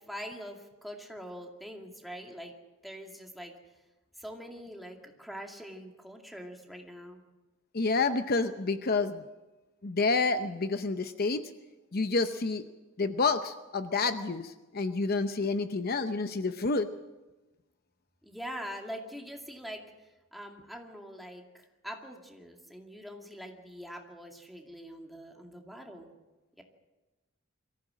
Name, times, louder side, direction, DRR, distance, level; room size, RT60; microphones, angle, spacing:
voice 1, 0.1-2.5 2.8-3.5 4.2-7.2 18.2-26.1 26.6-26.7, equal, ahead, 1 dB, 2.3 m, -44 dB
voice 2, 7.7-9.3 9.8-11.4 11.9-12.6 13.0-16.9, left 3 dB, 50° left, 9 dB, 0.8 m, -29 dB
23.0 x 15.0 x 7.6 m, 1.1 s
head